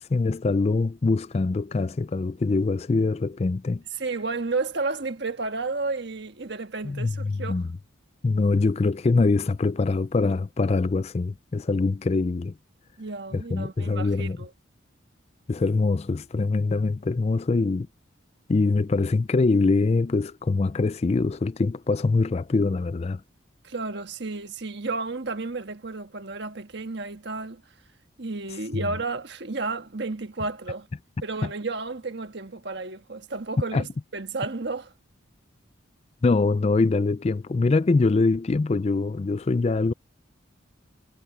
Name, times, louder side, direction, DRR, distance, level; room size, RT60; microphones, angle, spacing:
voice 1, 0.1-3.8 6.8-7.7 8.2-12.5 13.3-14.4 15.5-17.9 18.5-23.2 28.7-28.8 31.4-31.5 33.7-33.9 36.2-39.9, left 3 dB, 30° left, 0.4 m, -23 dB
voice 2, 4.0-7.6 13.0-14.5 23.6-27.6 28.2-30.9 31.2-34.9, right 3 dB, 60° right, 1.5 m, -32 dB
head